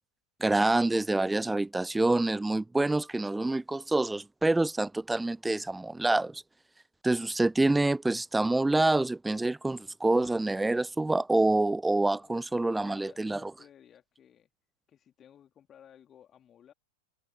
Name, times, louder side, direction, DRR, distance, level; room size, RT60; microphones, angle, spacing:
voice 1, 0.4-6.4 7.0-13.5, right 2 dB, 5° right, 0.3 m, -27 dB
voice 2, 12.2-14.5 14.9-16.7, left 9 dB, 25° left, 3.0 m, -57 dB
figure-of-eight pair, 90°, 0 cm